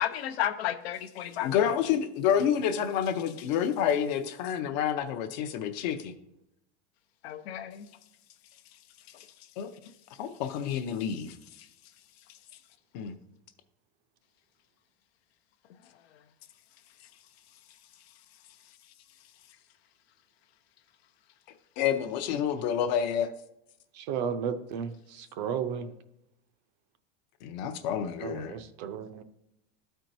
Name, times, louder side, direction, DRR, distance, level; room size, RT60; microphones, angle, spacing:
voice 1, 0.0-1.6 3.4-3.5 7.2-7.9 9.1-9.5 9.8-9.9 10.7-10.8 11.6-11.7 12.3-12.4 16.1-16.2, left 11 dB, 85° left, 0.7 m, -34 dB
voice 2, 1.4-6.1 9.6-9.7 10.2-11.3 12.9-13.2 21.8-23.3 27.4-28.6, left 8 dB, 45° left, 0.6 m, -28 dB
voice 3, 24.0-25.9 28.2-29.2, right 7 dB, 45° right, 0.5 m, -34 dB
13.5 x 4.5 x 2.6 m
supercardioid pair, 170°, 30 cm